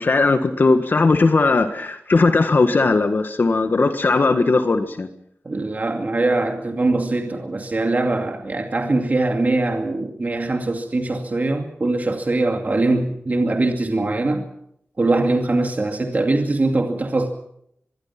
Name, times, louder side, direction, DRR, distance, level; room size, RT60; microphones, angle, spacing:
voice 1, 0.0-5.1, left 3 dB, 50° left, 8 dB, 1.6 m, -18 dB
voice 2, 5.4-14.5 15.0-17.3, right 2 dB, 40° right, 4 dB, 2.4 m, -22 dB
24.5 x 22.5 x 6.0 m, 0.73 s
wide cardioid pair, 110°, 4 cm